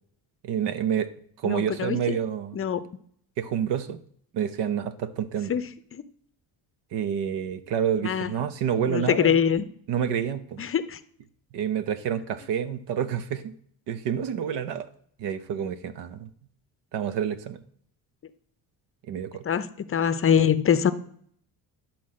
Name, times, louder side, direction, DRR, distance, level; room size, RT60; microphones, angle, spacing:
voice 1, 0.4-1.1 1.4-2.6 3.4-4.0 4.3-5.6 6.9-9.4 9.9-10.6 11.5-13.5 13.9-14.9 15.2-16.3 16.9-17.6 19.1-19.4, right 8 dB, 75° right, 13 dB, 1.0 m, -28 dB
voice 2, 1.4-2.2 2.5-2.8 5.5-5.7 5.9-6.0 8.0-8.3 8.9-9.6 10.6-11.0 19.4-20.9, left 8 dB, 30° left, 13 dB, 0.6 m, -23 dB
11.5 x 4.4 x 7.6 m, 0.63 s
cardioid pair, 125°, 42 cm